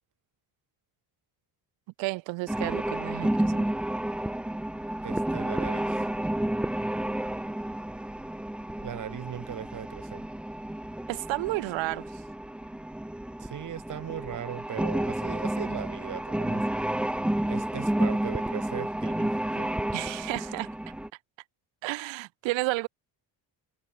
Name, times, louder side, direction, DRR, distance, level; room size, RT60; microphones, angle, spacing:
voice 1, 2.0-3.6 11.1-12.0 19.9-20.7 21.8-22.9, right 21 dB, 85° right, 0.6 m, -31 dB
sound 1, 2.5-21.1, right 1 dB, 5° right, 0.4 m, -31 dB
voice 2, 5.0-6.1 8.8-10.2 13.4-16.6 17.5-19.7, right 10 dB, 45° right, 1.9 m, -38 dB
cardioid pair, 175°, 44 cm